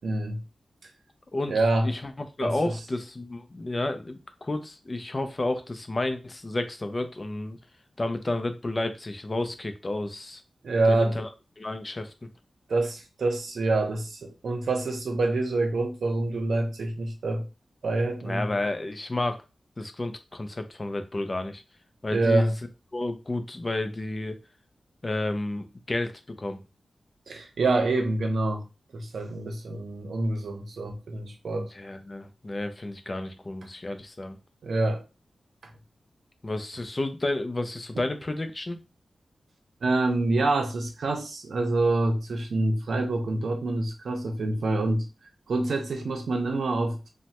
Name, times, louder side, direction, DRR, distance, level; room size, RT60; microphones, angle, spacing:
voice 1, 0.0-0.4 1.5-1.9 2.4-2.7 10.6-11.2 12.7-17.5 17.8-18.5 22.1-22.5 27.3-28.6 28.9-31.7 34.6-35.0 37.9-38.1 39.8-45.1 45.5-47.1, right 2 dB, 85° right, 0.7 m, -26 dB
voice 2, 1.3-7.6 8.0-10.4 10.9-11.3 11.6-12.1 18.2-19.4 19.8-21.6 22.0-22.5 22.9-24.4 25.0-26.6 31.5-34.4 36.4-38.8, left 2 dB, 30° left, 0.4 m, -31 dB
3.1 x 2.1 x 2.9 m
wide cardioid pair, 105°, 0 cm